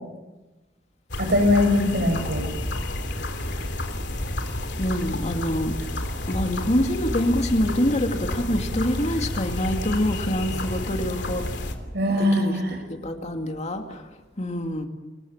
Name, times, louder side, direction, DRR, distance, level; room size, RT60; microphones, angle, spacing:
sound 1, 1.1-11.7, left 1 dB, 70° left, 3.3 m, -30 dB
voice 1, 1.2-2.4 11.9-12.8, left 1 dB, 65° right, 5 dB, 7.7 m, -21 dB
voice 2, 4.8-5.8 6.3-11.5 12.2-12.6 12.9-14.1 14.4-14.9, left 1 dB, 40° left, 4 dB, 2.4 m, -26 dB
27.5 x 22.5 x 7.4 m, 1.1 s
head